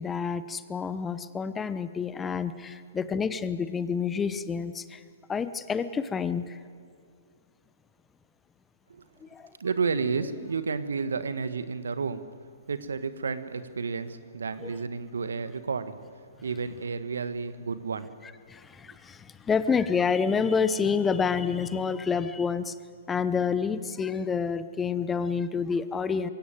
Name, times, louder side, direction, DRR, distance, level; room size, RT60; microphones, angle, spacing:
voice 1, 0.0-5.0 5.3-6.6 9.2-9.5 14.6-14.7 18.5-22.8 23.1-26.3, left 6 dB, 15° left, 13 dB, 0.9 m, -28 dB
voice 2, 9.6-12.2 12.7-16.0 16.4-18.1, right 5 dB, 75° right, 12 dB, 1.3 m, -31 dB
22.0 x 17.0 x 9.1 m, 2.2 s
figure-of-eight pair, 120°, 0 cm